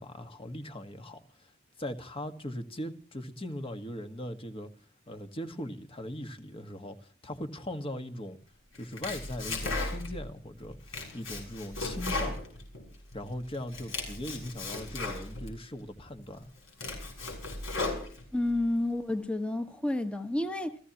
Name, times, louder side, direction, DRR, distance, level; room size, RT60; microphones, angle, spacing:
voice 1, 0.0-1.5 1.8-4.7 5.1-8.4 8.7-12.4 13.1-16.5, left 1 dB, 30° left, 1.6 m, -39 dB
Domestic sounds home sounds, 8.7-10.3 10.6-13.2 13.5-15.5 16.1-16.2 16.6-18.5, left 2 dB, 75° left, 6.6 m, -36 dB
voice 2, 18.3-20.8, left 1 dB, 5° left, 1.3 m, -30 dB
29.0 x 15.5 x 3.0 m
head